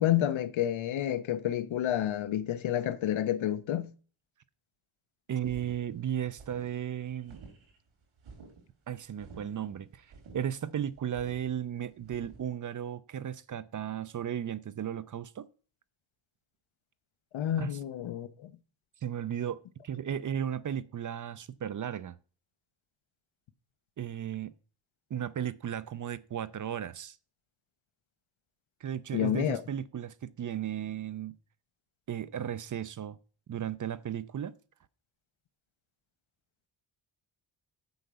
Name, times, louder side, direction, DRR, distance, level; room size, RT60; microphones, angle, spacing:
voice 1, 0.0-3.9 17.3-18.5 29.1-29.6, left 11 dB, 75° left, 0.8 m, -29 dB
voice 2, 5.3-7.4 8.9-15.5 17.6-17.8 19.0-22.1 24.0-24.5 25.1-27.2 28.8-31.3 32.1-33.2 33.5-34.5, right 9 dB, 40° right, 0.5 m, -35 dB
sound 1, 5.4-12.5, right 4 dB, 85° right, 3.8 m, -52 dB
8.0 x 5.0 x 6.8 m
wide cardioid pair, 135°, 48 cm